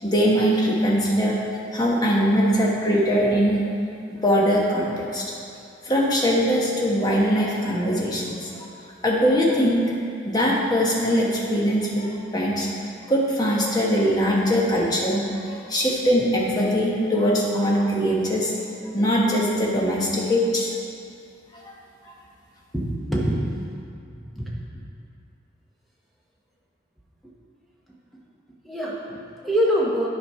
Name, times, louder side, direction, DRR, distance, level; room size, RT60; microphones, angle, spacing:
voice 1, 0.0-1.4 1.7-3.6 4.1-5.2 5.8-8.5 9.0-9.8 10.2-12.7 13.1-18.5 18.9-20.7 21.5-21.7, equal, 20° left, -4 dB, 1.1 m, -21 dB
voice 2, 22.7-23.4 24.1-24.5 28.6-30.1, equal, ahead, -5 dB, 1.1 m, -25 dB
10.0 x 5.2 x 4.3 m, 2.4 s
head